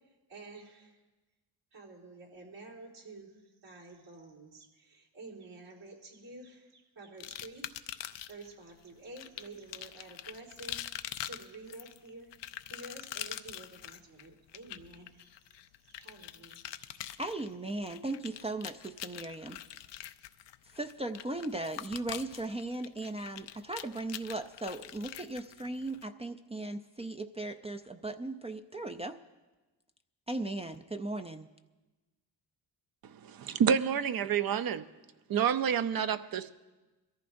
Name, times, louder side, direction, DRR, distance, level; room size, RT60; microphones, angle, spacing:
voice 1, 0.3-1.0 1.7-12.3 12.7-15.4 15.8-17.2, right 2 dB, 75° right, -3 dB, 3.6 m, -50 dB
sound 1, 7.2-8.5 9.2-26.0, left 12 dB, 85° left, 0.6 m, -44 dB
voice 2, 17.2-19.6 20.6-29.2 30.3-31.5, right 2 dB, 15° right, 5 dB, 0.4 m, -37 dB
voice 3, 33.2-34.9 35.3-36.5, right 8 dB, 55° right, 12 dB, 0.7 m, -28 dB
22.5 x 14.5 x 2.6 m, 1.2 s
cardioid pair, 80°, 42 cm